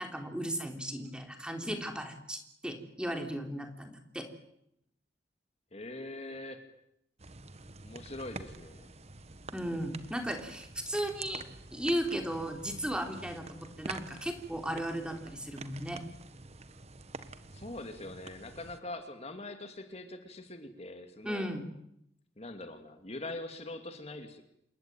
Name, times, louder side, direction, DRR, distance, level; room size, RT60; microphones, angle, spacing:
voice 1, 0.0-4.3 9.5-11.4 11.7-16.0 21.2-21.7, equal, 5° right, 5 dB, 3.5 m, -36 dB
voice 2, 5.7-6.6 7.8-8.9 17.5-21.5 22.4-24.5, left 2 dB, 35° left, 7 dB, 2.5 m, -43 dB
sound 1, 7.2-18.8, right 3 dB, 40° right, 1.5 m, -47 dB
27.5 x 22.0 x 9.1 m, 0.76 s
head